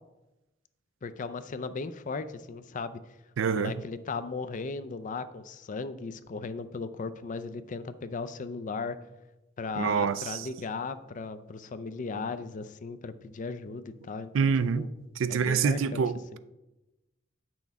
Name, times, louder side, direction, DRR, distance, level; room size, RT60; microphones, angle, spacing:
voice 1, 1.0-3.0 3.5-9.0 9.6-14.9 15.3-16.1 16.3-16.4, left 4 dB, 40° left, 0.4 m, -37 dB
voice 2, 3.4-3.7 9.7-10.5 14.3-14.9 15.2-16.4, right 6 dB, 70° right, 0.4 m, -26 dB
8.9 x 6.1 x 3.5 m
head